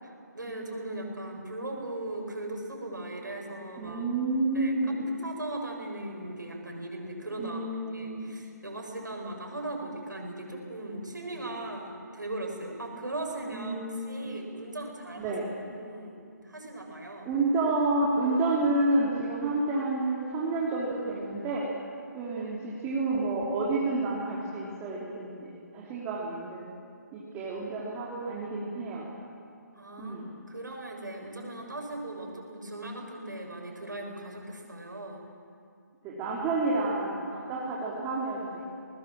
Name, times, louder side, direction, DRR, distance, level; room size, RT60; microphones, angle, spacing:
voice 1, 0.0-4.1 4.5-7.7 7.9-13.8 14.1-15.3 15.7-16.2 16.4-17.3 29.7-30.2 30.5-35.2, right 2 dB, 80° right, 1 dB, 6.7 m, -38 dB
voice 2, 3.8-5.1 7.4-8.4 13.5-14.3 15.2-15.5 17.2-21.7 22.1-26.6 27.1-29.0 30.0-30.3 36.0-38.6, right 2 dB, 15° right, -5 dB, 3.2 m, -29 dB
29.5 x 20.0 x 7.4 m, 2.4 s
figure-of-eight pair, 145°, 10 cm